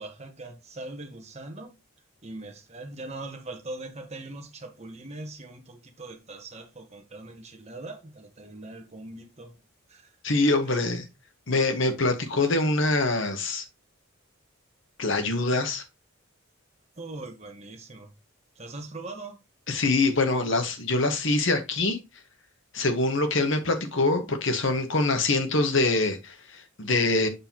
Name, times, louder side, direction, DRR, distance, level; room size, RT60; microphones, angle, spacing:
voice 1, 0.0-1.7 2.2-9.5 9.9-10.1 17.0-18.1 18.6-19.4, right 2 dB, 30° right, 1.2 m, -41 dB
voice 2, 10.2-11.1 11.5-13.6 15.0-15.8 19.7-22.0 22.7-27.3, left 2 dB, 60° left, 1.3 m, -24 dB
6.7 x 5.6 x 2.9 m
head